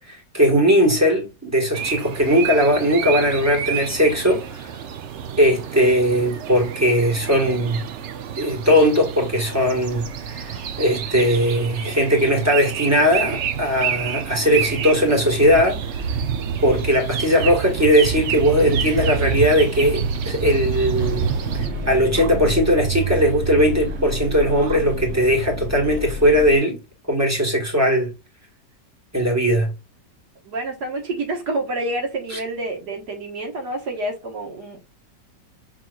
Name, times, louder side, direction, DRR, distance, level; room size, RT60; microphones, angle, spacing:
voice 1, 0.0-4.7 5.4-7.8 8.3-15.8 16.6-21.3 21.9-26.8 27.1-28.1 29.1-29.7 32.3-32.4, equal, 10° right, 1.3 m, -19 dB
sound 1, 1.7-21.7, right 7 dB, 85° right, 0.6 m, -28 dB
sound 2, 20.9-26.6, right 2 dB, 50° right, 1.0 m, -29 dB
voice 2, 30.4-34.9, right 2 dB, 65° right, 2.0 m, -28 dB
6.0 x 3.0 x 2.4 m
omnidirectional pair, 1.9 m